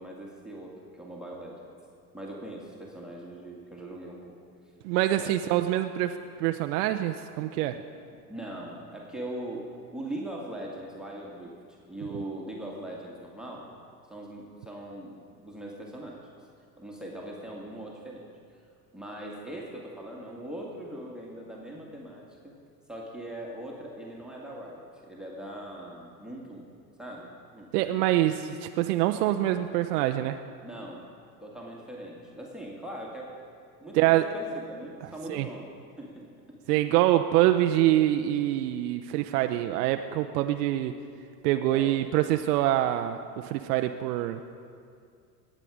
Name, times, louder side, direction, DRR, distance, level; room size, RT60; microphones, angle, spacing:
voice 1, 0.0-1.6 2.1-4.3 4.6-4.7 5.2-5.4 8.3-13.7 14.1-16.3 16.8-18.2 18.5-18.6 18.9-22.6 22.9-26.7 27.0-27.7 30.6-31.0 31.4-33.3 33.8-36.8 41.7-42.0, right 1 dB, ahead, -2 dB, 2.0 m, -41 dB
voice 2, 4.8-7.8 27.7-30.4 33.9-34.2 35.3-35.5 36.7-40.9 41.4-44.4, right 13 dB, 70° right, 7 dB, 0.6 m, -25 dB
18.5 x 7.6 x 5.0 m, 2.3 s
hypercardioid pair, 70°, 49 cm